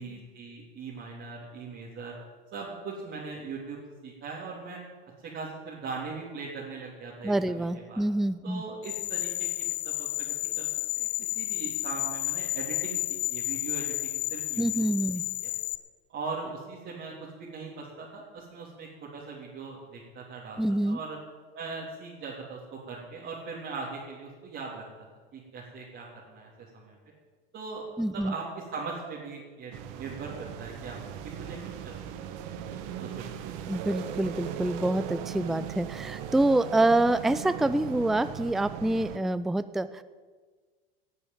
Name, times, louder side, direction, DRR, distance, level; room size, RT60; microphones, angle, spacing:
voice 1, 0.0-2.1 2.5-4.8 5.2-8.0 8.4-14.8 15.4-15.5 16.1-21.2 21.5-24.8 25.3-27.0 27.5-27.9 28.1-31.0 31.4-31.6 31.8-31.9 32.5-32.7 33.0-33.6, right 4 dB, 40° right, -5 dB, 3.4 m, -40 dB
voice 2, 7.2-8.6 14.6-15.2 20.6-21.0 28.0-28.3 33.7-40.0, right 1 dB, ahead, 14 dB, 0.4 m, -26 dB
sound 1, 8.8-15.8, left 19 dB, 50° left, 0.8 m, -32 dB
sound 2, 29.7-39.2, right 9 dB, 55° right, 1.4 m, -38 dB
17.0 x 6.9 x 9.1 m, 1.5 s
hypercardioid pair, 80°, 30 cm